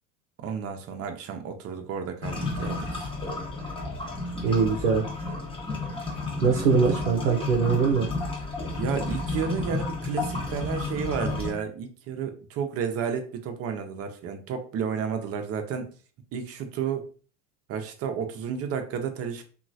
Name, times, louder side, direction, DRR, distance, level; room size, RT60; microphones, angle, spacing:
voice 1, 0.4-3.1 4.3-4.5 8.8-15.9 16.3-17.1 17.7-19.4, right 7 dB, 40° right, 6 dB, 0.6 m, -32 dB
sound 1, 2.2-11.5, left 3 dB, 15° left, 0.9 m, -31 dB
voice 2, 4.4-5.1 6.4-8.1, right 5 dB, 80° right, 0 dB, 0.6 m, -22 dB
2.9 x 2.4 x 2.6 m, 0.39 s
hypercardioid pair, 85°, 38 cm